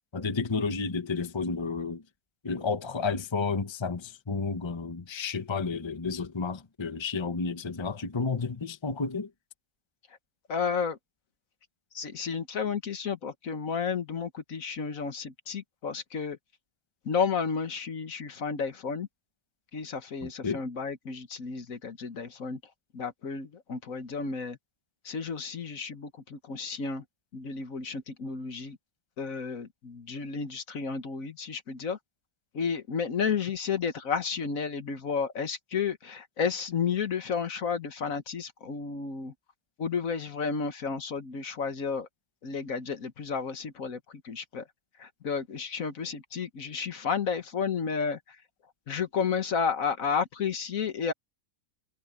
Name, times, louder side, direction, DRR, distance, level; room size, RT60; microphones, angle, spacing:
voice 1, 0.1-2.0 2.4-9.3 20.2-20.6, left 4 dB, 20° left, 1.0 m, -31 dB
voice 2, 10.5-11.0 11.9-16.4 17.0-19.1 19.7-22.6 22.9-24.6 25.0-27.0 27.3-28.8 29.2-32.0 32.5-39.3 39.8-42.1 42.4-44.6 45.0-48.2 48.9-51.1, left 6 dB, 60° left, 1.7 m, -32 dB
omnidirectional pair, 1.6 m